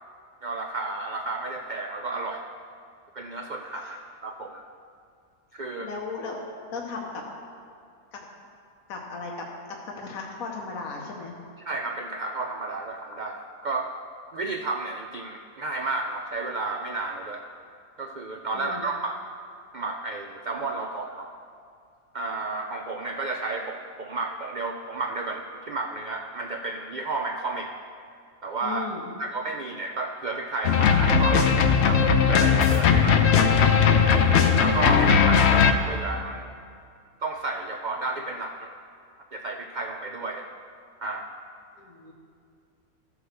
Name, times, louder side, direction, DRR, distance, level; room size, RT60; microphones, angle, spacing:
voice 1, 0.4-2.5 3.1-4.7 5.5-5.9 11.6-13.9 14.3-17.5 18.0-19.2 19.7-21.3 22.1-27.7 28.4-28.9 29.2-33.6 34.6-36.5 37.2-38.8 39.3-40.5 41.0-41.3, right 3 dB, 80° right, 3 dB, 0.4 m, -32 dB
voice 2, 5.8-6.4 6.7-7.2 8.1-8.3 8.9-9.5 9.8-11.3 18.5-18.8 28.6-29.1 41.8-42.1, left 4 dB, 80° left, 0 dB, 1.4 m, -36 dB
sound 1, 30.6-35.7, left 6 dB, 60° left, 0.8 m, -19 dB
14.0 x 5.0 x 6.5 m, 2.4 s
omnidirectional pair, 1.5 m